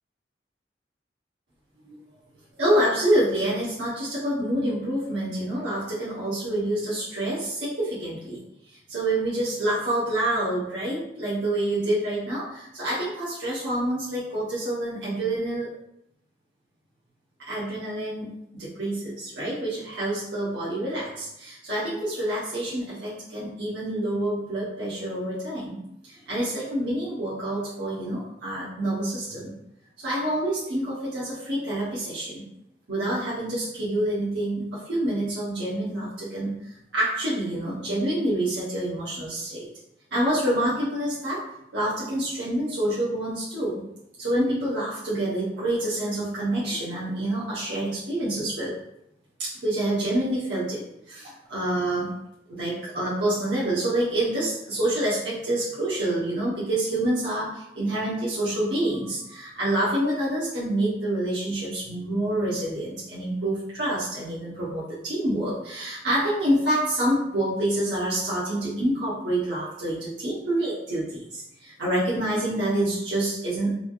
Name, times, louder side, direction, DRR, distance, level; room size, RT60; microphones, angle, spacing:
voice 1, 2.6-8.4 8.9-15.7 17.5-29.5 30.0-32.4 32.9-36.6 36.9-39.7 40.1-41.4 41.7-43.8 44.2-48.7 49.4-52.2 52.5-73.7, right 1 dB, 75° right, -9 dB, 0.8 m, -27 dB
3.2 x 2.4 x 2.2 m, 0.81 s
head